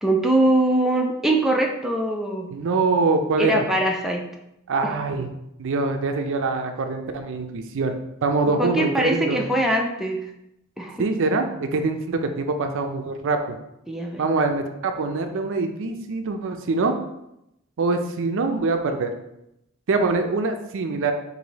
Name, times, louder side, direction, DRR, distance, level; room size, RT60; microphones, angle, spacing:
voice 1, 0.0-2.5 3.4-4.2 8.6-10.2 10.8-11.0 13.9-14.2, right 1 dB, ahead, 0 dB, 0.4 m, -22 dB
voice 2, 2.5-3.6 4.7-5.3 5.6-7.9 8.2-9.5 11.0-13.6 14.2-16.9 17.8-19.1 19.9-21.1, right 3 dB, 60° right, 6 dB, 0.5 m, -24 dB
4.8 x 2.6 x 4.0 m, 0.84 s
head